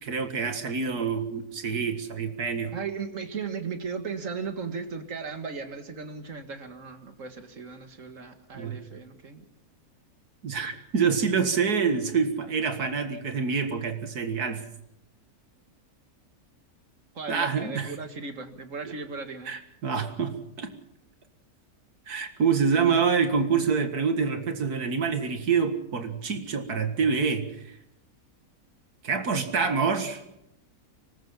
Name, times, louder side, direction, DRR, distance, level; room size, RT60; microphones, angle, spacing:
voice 1, 0.0-2.7 8.5-8.8 10.4-14.6 17.3-17.9 19.5-20.7 22.1-27.7 29.0-30.3, right 5 dB, 80° right, 8 dB, 2.3 m, -26 dB
voice 2, 2.7-9.4 11.0-11.1 17.2-19.5 22.8-23.0, right 5 dB, 55° right, 7 dB, 2.2 m, -36 dB
25.0 x 20.0 x 5.7 m, 0.82 s
omnidirectional pair, 1.6 m